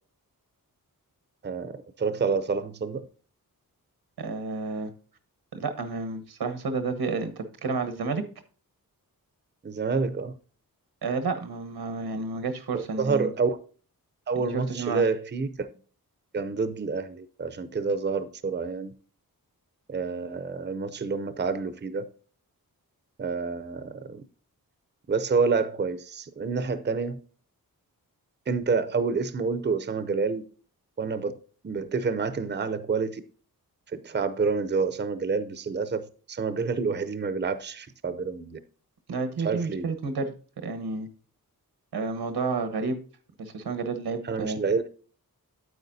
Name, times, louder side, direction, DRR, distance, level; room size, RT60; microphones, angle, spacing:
voice 1, 1.4-3.1 9.6-10.4 12.7-13.6 14.3-15.7 16.3-18.9 19.9-22.1 23.2-24.2 25.1-27.2 28.5-30.4 31.0-31.4 31.6-33.2 33.9-38.6 39.4-39.9 44.2-44.9, right 4 dB, 30° right, 0.6 m, -28 dB
voice 2, 4.2-4.9 5.5-8.2 11.0-13.3 14.5-15.0 39.1-41.1 41.9-43.0 43.4-44.6, right 4 dB, 90° right, 1.2 m, -30 dB
9.3 x 8.4 x 2.7 m
wide cardioid pair, 90°, 37 cm